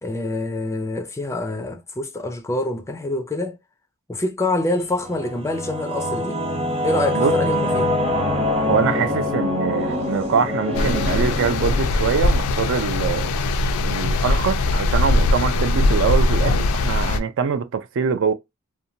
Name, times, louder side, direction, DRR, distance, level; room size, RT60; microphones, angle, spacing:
voice 1, 0.0-3.6 4.1-6.4 6.8-7.9, left 2 dB, 15° left, 0.3 m, -26 dB
Singing / Musical instrument, 4.9-14.1, left 1 dB, 30° right, 0.8 m, -25 dB
voice 2, 7.1-7.6 8.7-13.3 13.8-18.3, right 6 dB, 60° right, 0.4 m, -23 dB
sound 1, 10.7-17.2, left 2 dB, 90° left, 0.4 m, -20 dB
2.6 x 2.2 x 2.6 m
head